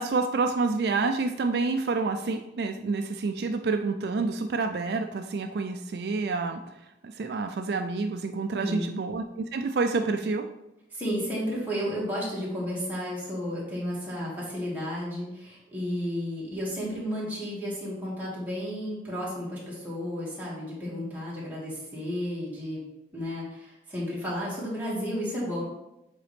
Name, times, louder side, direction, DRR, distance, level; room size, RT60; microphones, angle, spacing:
voice 1, 0.0-6.6 7.0-10.5, right 3 dB, 65° right, 6 dB, 0.4 m, -28 dB
voice 2, 8.5-8.9 10.9-22.8 23.1-25.6, equal, 10° right, -7 dB, 1.9 m, -32 dB
7.6 x 4.1 x 3.3 m, 0.90 s
head